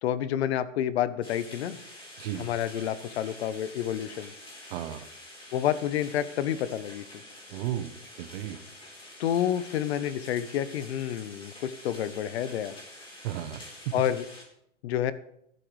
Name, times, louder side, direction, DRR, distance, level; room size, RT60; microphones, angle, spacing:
voice 1, 0.0-1.8 2.4-4.3 5.5-7.0 9.2-12.8 13.9-14.2 14.8-15.1, left 10 dB, 55° left, 15 dB, 1.1 m, -29 dB
sound 1, 1.2-14.4, left 1 dB, 15° left, 4.1 m, -47 dB
voice 2, 2.2-2.5 4.7-5.1 7.5-8.6 13.2-13.9, right 12 dB, 50° right, 12 dB, 1.1 m, -34 dB
15.0 x 12.0 x 3.4 m, 0.74 s
hypercardioid pair, 130°, 37 cm